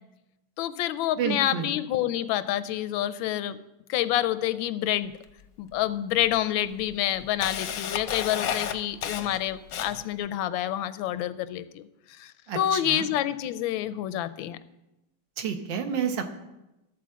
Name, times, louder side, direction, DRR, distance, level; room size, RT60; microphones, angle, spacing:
voice 1, 0.6-3.6 3.9-5.2 5.6-11.9 12.2-14.6, left 12 dB, 85° left, 14 dB, 1.3 m, -28 dB
voice 2, 1.2-1.7 12.5-13.1 15.4-16.2, right 7 dB, 75° right, 6 dB, 1.7 m, -30 dB
Camera, 5.2-5.3 6.2-6.3 6.7-10.2, left 8 dB, 65° left, 0.9 m, -32 dB
13.0 x 4.5 x 7.4 m, 0.96 s
omnidirectional pair, 2.1 m